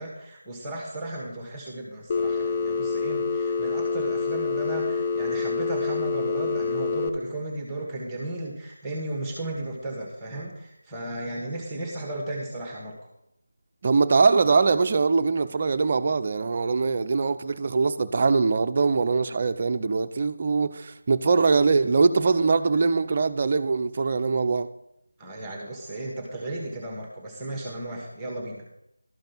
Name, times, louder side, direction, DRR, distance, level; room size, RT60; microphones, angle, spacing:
voice 1, 0.0-13.0 25.2-28.7, right 1 dB, 5° right, 1.3 m, -34 dB
Telephone, 2.1-7.1, left 4 dB, 20° left, 0.5 m, -27 dB
voice 2, 13.8-24.7, right 4 dB, 30° right, 0.5 m, -22 dB
12.5 x 5.2 x 5.8 m
figure-of-eight pair, 165°, 0 cm